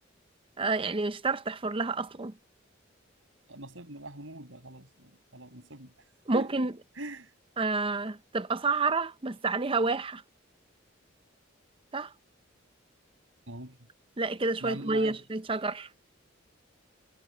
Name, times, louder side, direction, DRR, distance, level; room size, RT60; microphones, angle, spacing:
voice 1, 0.6-2.3 6.3-6.7 7.6-10.2 11.9-12.1 14.2-15.9, right 3 dB, 25° right, 0.7 m, -29 dB
voice 2, 3.5-5.9 6.3-6.7 7.0-7.3 13.5-13.8 14.6-15.2, right 1 dB, 75° right, 7.1 m, -42 dB
head